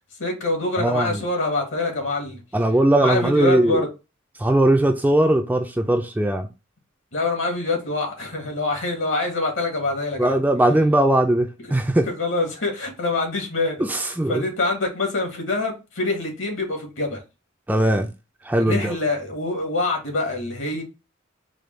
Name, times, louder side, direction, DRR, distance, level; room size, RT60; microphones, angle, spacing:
voice 1, 0.2-2.4 2.9-3.9 7.1-10.4 12.0-13.9 14.3-17.2 18.7-20.8, left 2 dB, 70° left, 1.6 m, -25 dB
voice 2, 0.8-1.2 2.5-3.9 4.4-6.5 10.2-12.1 13.8-14.4 17.7-18.1 18.4-19.0, right 1 dB, 10° right, 0.3 m, -19 dB
4.9 x 2.2 x 3.1 m
head